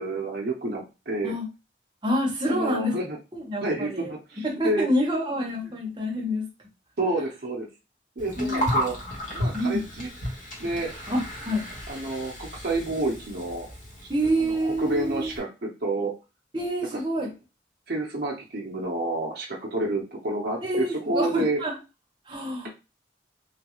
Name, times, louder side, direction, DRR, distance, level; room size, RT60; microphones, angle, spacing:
voice 1, 0.0-1.3 2.4-3.2 3.6-4.9 5.6-5.8 7.0-7.7 8.2-9.0 9.3-10.1 10.6-10.9 11.9-13.7 14.0-14.1 14.4-16.1 16.9-17.0 17.9-21.6, right 2 dB, 60° right, -3 dB, 0.7 m, -29 dB
voice 2, 2.0-2.9 3.3-4.1 4.4-6.5 8.4-8.7 9.5-9.8 11.1-11.6 14.1-15.3 16.5-17.3 20.6-21.7 22.3-22.7, equal, 25° right, -1 dB, 0.9 m, -27 dB
Gurgling, 8.2-15.4, equal, 45° left, 1.1 m, -33 dB
3.2 x 2.3 x 3.0 m, 0.28 s
head